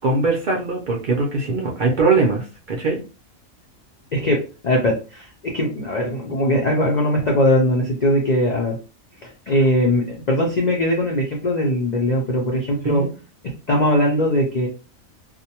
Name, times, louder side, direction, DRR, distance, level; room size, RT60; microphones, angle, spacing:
voice 1, 0.0-3.0 12.8-13.1, right 3 dB, 70° right, -1 dB, 0.4 m, -21 dB
voice 2, 4.1-8.8 9.2-13.0 13.7-14.7, left 1 dB, 80° left, -1 dB, 0.3 m, -20 dB
2.5 x 2.1 x 2.8 m, 0.33 s
omnidirectional pair, 1.5 m